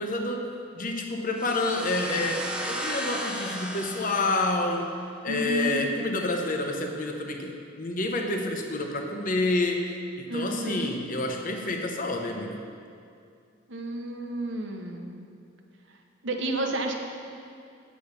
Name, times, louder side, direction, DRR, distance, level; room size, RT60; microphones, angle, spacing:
voice 1, 0.0-4.9 5.2-12.6, left 2 dB, 45° left, 3 dB, 0.9 m, -29 dB
sound 1, 1.4-5.1, equal, 5° right, 0.7 m, -35 dB
voice 2, 5.3-5.9 10.3-11.0 13.7-15.3 16.2-16.9, right 1 dB, 65° right, 3 dB, 1.0 m, -31 dB
8.7 x 6.2 x 6.8 m, 2.4 s
head